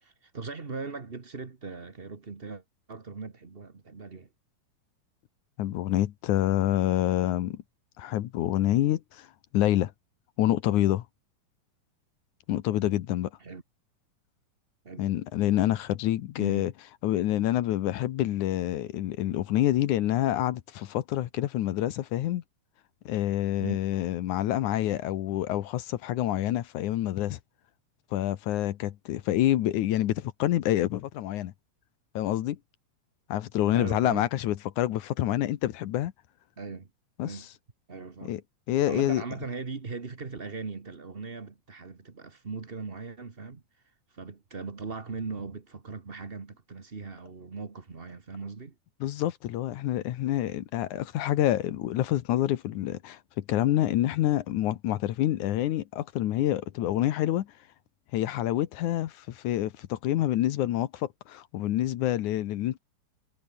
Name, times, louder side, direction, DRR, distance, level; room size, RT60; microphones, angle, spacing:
voice 1, 0.0-2.6 2.9-4.3 13.4-13.6 14.8-15.1 16.4-16.7 23.6-23.8 33.7-34.3 36.6-36.9 37.2-37.5 37.9-38.4 38.9-43.6 44.1-48.7, right 4 dB, 35° right, 0.9 m, -39 dB
voice 2, 5.6-7.6 8.0-9.3 9.5-9.9 10.4-11.0 12.5-13.3 15.0-16.7 17.0-22.4 23.1-27.4 28.1-31.5 32.2-32.6 33.3-36.1 37.2-37.5 38.2-38.4 38.7-39.2 49.0-57.5 58.1-62.8, left 13 dB, 75° left, 2.5 m, -27 dB
omnidirectional pair, 3.5 m